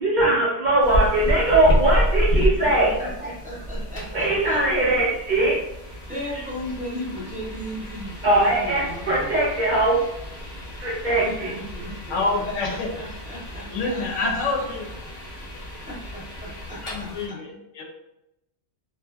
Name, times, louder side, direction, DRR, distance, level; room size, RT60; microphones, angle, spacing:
voice 1, 0.0-3.1 4.1-5.6 8.2-10.0 10.8-11.5, right 1 dB, 55° right, -5 dB, 0.5 m, -20 dB
sound 1, 0.8-17.3, equal, 45° left, 0.9 m, -30 dB
voice 2, 2.3-4.6 6.1-9.4 11.2-14.6 15.0-15.1 15.9-17.6, equal, 10° right, -7 dB, 0.6 m, -36 dB
voice 3, 12.1-12.9 13.7-14.8 15.5-15.7 16.8-17.8, left 3 dB, 85° left, 0 dB, 1.0 m, -27 dB
2.7 x 2.4 x 2.2 m, 0.86 s
omnidirectional pair, 1.2 m